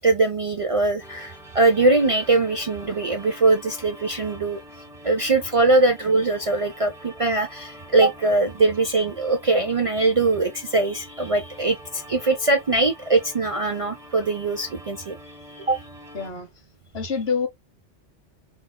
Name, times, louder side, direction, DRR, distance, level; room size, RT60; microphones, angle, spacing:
voice 1, 0.0-4.6 5.0-15.2 15.7-15.8, right 3 dB, 60° right, 0.3 m, -21 dB
sound 1, 1.0-16.3, equal, 5° right, 0.9 m, -45 dB
voice 2, 16.1-16.5 16.9-17.5, left 5 dB, 60° left, 1.2 m, -27 dB
3.9 x 2.4 x 2.2 m
omnidirectional pair, 1.2 m